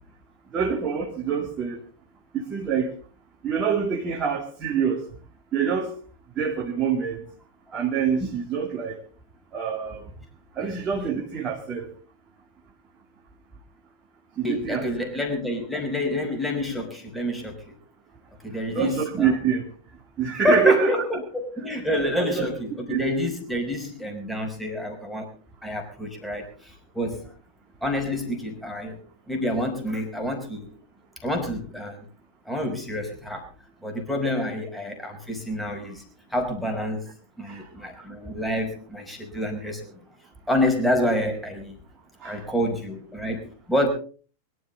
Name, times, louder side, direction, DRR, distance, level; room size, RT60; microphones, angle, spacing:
voice 1, 0.5-1.8 2.3-2.9 3.4-5.0 5.5-5.9 6.4-7.2 7.7-9.0 9.5-10.0 10.6-11.9 14.4-14.9 18.7-19.6 20.2-20.9 22.1-22.4 22.9-23.0 37.4-37.6 42.2-42.4, right 6 dB, 25° right, -1 dB, 2.7 m, -25 dB
voice 2, 14.4-17.7 18.4-19.3 20.3-25.3 25.6-27.2 27.8-29.0 29.3-30.7 31.2-32.0 32.5-33.4 33.8-36.0 36.3-37.0 37.4-40.0 40.5-41.7 42.2-43.9, left 1 dB, 5° left, 2 dB, 5.0 m, -28 dB
23.0 x 13.0 x 4.0 m, 0.40 s
figure-of-eight pair, 90°, 0 cm